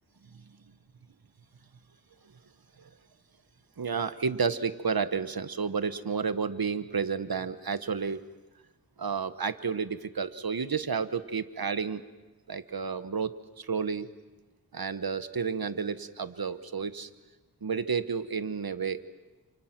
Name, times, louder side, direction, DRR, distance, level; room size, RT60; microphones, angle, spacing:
voice 1, 3.8-8.2 9.0-12.0 12.5-14.1 14.7-17.1 17.6-19.0, right 5 dB, 70° right, 12 dB, 1.2 m, -31 dB
30.0 x 28.0 x 6.0 m, 1.1 s
wide cardioid pair, 50°, 38 cm